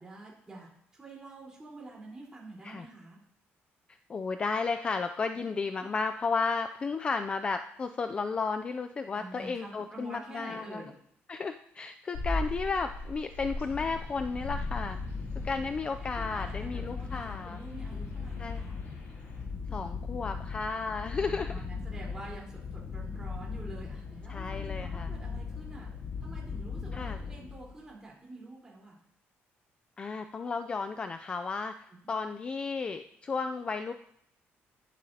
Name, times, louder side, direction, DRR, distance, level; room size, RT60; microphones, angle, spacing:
voice 1, 0.0-3.2 5.3-5.5 9.1-10.9 16.0-18.8 21.1-25.9 26.2-29.0, right 2 dB, 15° right, -4 dB, 3.9 m, -47 dB
voice 2, 4.1-10.8 11.3-15.0 15.4-17.6 18.4-18.7 19.7-21.7 24.3-25.1 26.9-27.2 30.0-31.7 32.1-33.9, left 4 dB, 25° left, 7 dB, 0.4 m, -33 dB
sound 1, 12.1-19.4, left 2 dB, 70° left, 4.7 m, -39 dB
sound 2, 13.6-27.8, left 5 dB, 40° left, 0.9 m, -39 dB
12.0 x 11.5 x 2.8 m, 0.71 s
cardioid pair, 165°, 4 cm